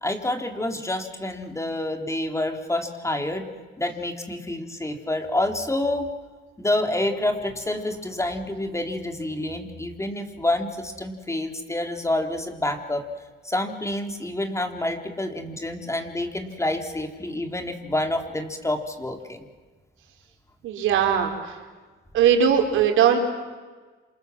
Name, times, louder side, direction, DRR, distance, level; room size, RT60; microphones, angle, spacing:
voice 1, 0.0-3.5 3.8-6.1 6.6-13.0 13.4-19.5, left 1 dB, 15° left, 5 dB, 4.1 m, -28 dB
voice 2, 20.6-21.5 22.1-23.2, right 8 dB, 85° right, 3 dB, 4.6 m, -19 dB
28.0 x 27.5 x 7.7 m, 1.3 s
cardioid pair, 90°, 20 cm